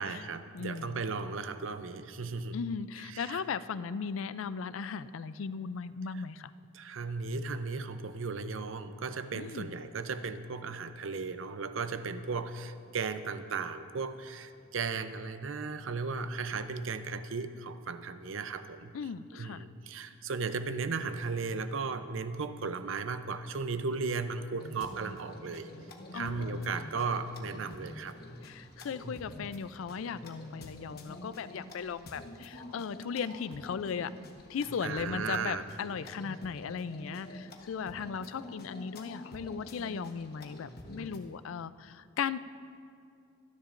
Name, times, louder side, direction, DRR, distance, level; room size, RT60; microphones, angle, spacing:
voice 1, 0.0-2.6 3.0-3.4 6.7-18.9 19.3-25.7 26.1-28.2 29.0-29.2 34.8-35.6, right 4 dB, 75° right, 10 dB, 0.6 m, -36 dB
voice 2, 0.5-1.0 2.5-6.5 9.3-9.8 18.9-19.6 26.1-26.7 28.4-34.1 34.5-42.4, left 6 dB, 80° left, 15 dB, 0.4 m, -37 dB
sound 1, 24.6-41.3, left 1 dB, 50° left, 1.1 m, -47 dB
24.5 x 10.0 x 2.5 m, 2.4 s
head